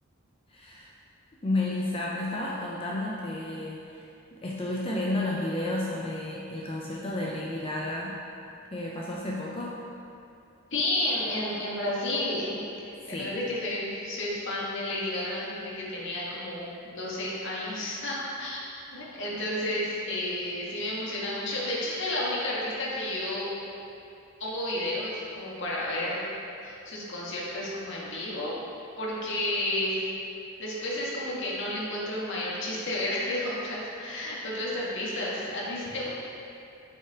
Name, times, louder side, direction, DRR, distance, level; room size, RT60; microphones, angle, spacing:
voice 1, 0.5-0.9 1.4-8.2 8.7-9.7 13.1-13.4, left 2 dB, 30° left, -4 dB, 0.6 m, -32 dB
voice 2, 10.7-18.6 18.9-23.5 24.4-26.3 26.6-28.6 29.0-30.1 30.6-36.1, left 1 dB, 65° left, -6 dB, 1.6 m, -31 dB
8.3 x 5.6 x 3.6 m, 2.6 s
head